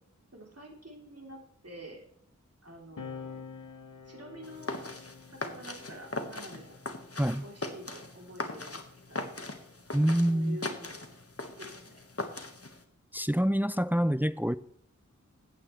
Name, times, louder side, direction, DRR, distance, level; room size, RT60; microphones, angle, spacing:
voice 1, 0.3-2.0 2.6-3.4 4.0-4.7 5.3-6.8 7.4-9.4 10.3-11.0 11.6-12.0, equal, 50° right, 3.2 m, -48 dB
sound 1, 3.0-9.9 10.9-12.7, left 5 dB, 90° left, 0.8 m, -50 dB
sound 2, 4.4-12.8, left 2 dB, 50° left, 1.5 m, -40 dB
voice 2, 9.9-10.6 13.1-14.6, equal, 5° right, 0.5 m, -26 dB
15.0 x 8.8 x 3.2 m
wide cardioid pair, 40°, 31 cm